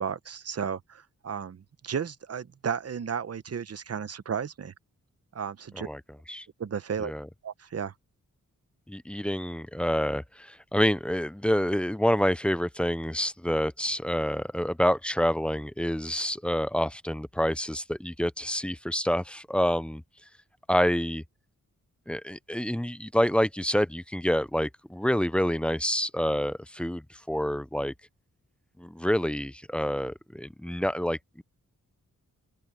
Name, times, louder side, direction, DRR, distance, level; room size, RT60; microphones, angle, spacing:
voice 1, 0.0-4.7 5.3-5.9 6.6-7.1 7.4-7.9, right 7 dB, 50° right, 0.9 m, -33 dB
voice 2, 8.9-20.0 20.7-21.2 22.1-27.9 28.8-31.4, equal, 5° left, 0.4 m, -27 dB
open air
wide cardioid pair, 130°, 32 cm